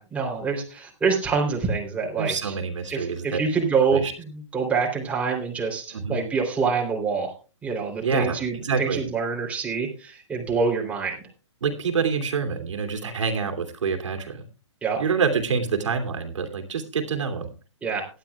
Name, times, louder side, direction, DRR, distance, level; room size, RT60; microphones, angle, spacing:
voice 1, 0.0-2.5 2.9-7.3 7.6-11.2 14.8-15.0 17.8-18.1, right 5 dB, 10° right, -1 dB, 3.2 m, -26 dB
voice 2, 2.2-3.4 3.9-4.1 5.9-6.2 8.0-9.0 11.6-14.4 15.0-17.5, right 5 dB, 75° right, 4 dB, 2.8 m, -26 dB
18.0 x 12.0 x 2.3 m, 0.33 s
hypercardioid pair, 145°, 16 cm